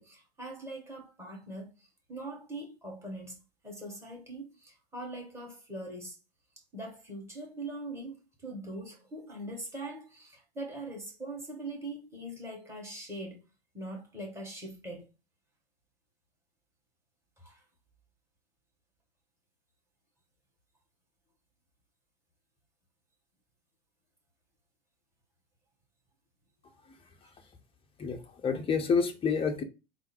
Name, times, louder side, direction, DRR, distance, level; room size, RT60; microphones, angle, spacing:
voice 1, 0.0-6.2 6.7-13.4 13.7-15.1 17.4-17.6, right 1 dB, 10° right, 1.7 m, -42 dB
voice 2, 28.0-29.6, left 5 dB, 15° left, 0.8 m, -29 dB
3.6 x 2.2 x 4.4 m
figure-of-eight pair, 90°, 31 cm